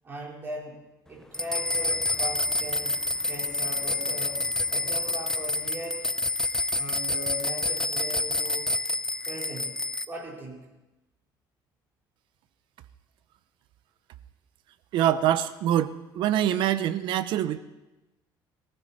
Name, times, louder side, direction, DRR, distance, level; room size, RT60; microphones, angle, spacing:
voice 1, 0.0-0.8 1.1-3.0 3.2-4.4 4.7-6.0 6.8-8.7 9.3-9.8 10.1-10.7, right 1 dB, 25° right, -2 dB, 4.3 m, -39 dB
sound 1, 1.3-10.1, left 2 dB, 5° left, 0.5 m, -28 dB
voice 2, 14.9-17.6, right 11 dB, 65° right, 13 dB, 0.9 m, -25 dB
22.5 x 15.0 x 4.3 m, 1.0 s
cardioid pair, 145°, 9 cm